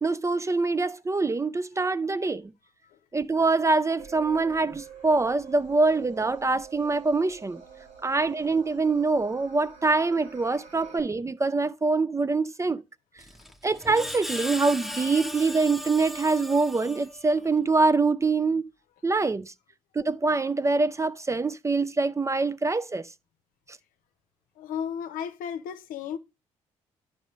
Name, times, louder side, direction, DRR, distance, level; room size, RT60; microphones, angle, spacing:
voice 1, 0.0-2.5 3.1-7.6 8.0-12.8 13.6-18.6 19.0-19.5 20.0-23.1, right 3 dB, 20° right, 0.4 m, -24 dB
sound 1, 4.0-11.0, right 7 dB, 85° right, 3.9 m, -47 dB
Screech, 13.2-17.5, left 1 dB, ahead, 1.0 m, -38 dB
voice 2, 24.6-26.2, left 8 dB, 70° left, 0.7 m, -33 dB
11.0 x 5.4 x 3.1 m
hypercardioid pair, 50°, 15 cm